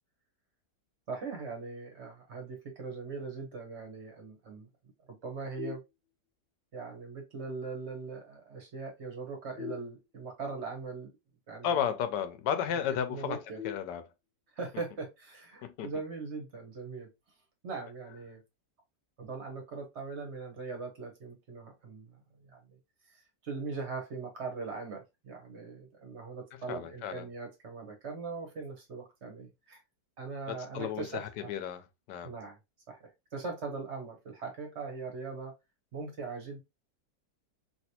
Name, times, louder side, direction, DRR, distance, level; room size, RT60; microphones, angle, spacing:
voice 1, 1.1-4.7 5.2-5.8 6.7-11.1 11.5-11.8 13.1-13.6 14.5-17.1 17.6-18.4 19.2-22.1 22.5-22.6 23.1-29.8 30.2-31.5 32.2-32.6 32.9-33.0 33.3-35.5 35.9-36.6, right 4 dB, 45° right, 1.1 m, -40 dB
sound 1, 5.6-6.5 9.6-10.6 13.6-14.6, left 11 dB, 40° left, 1.1 m, -45 dB
voice 2, 11.6-13.4 13.6-14.1 15.6-15.9 26.5-27.3 30.5-32.3, left 8 dB, 85° left, 1.2 m, -33 dB
3.2 x 2.8 x 2.7 m
omnidirectional pair, 1.8 m